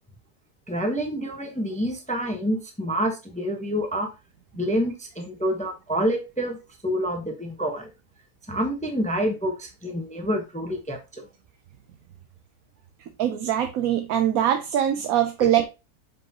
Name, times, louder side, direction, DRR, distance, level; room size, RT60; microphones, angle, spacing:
voice 1, 0.7-4.1 4.5-7.9 8.5-11.2 15.4-15.5, equal, 5° left, 0.8 m, -27 dB
voice 2, 13.2-15.6, right 10 dB, 70° right, 1.1 m, -22 dB
7.5 x 5.1 x 2.8 m
omnidirectional pair, 1.6 m